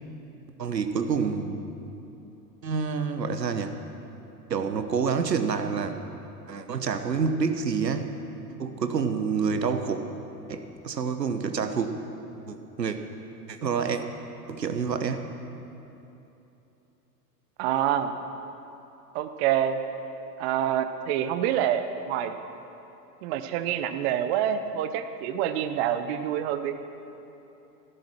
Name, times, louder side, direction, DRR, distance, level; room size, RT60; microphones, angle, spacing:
voice 1, 0.6-1.7 2.6-3.7 4.5-5.9 6.5-8.0 8.6-10.0 10.5-11.9 12.5-13.0 13.5-14.0 14.5-15.3, right 5 dB, 80° right, 8 dB, 1.1 m, -28 dB
voice 2, 17.6-18.1 19.1-19.8 20.4-22.4 23.2-26.7, right 10 dB, 40° right, 9 dB, 0.8 m, -27 dB
14.0 x 12.5 x 6.2 m, 2.9 s
figure-of-eight pair, 90°, 49 cm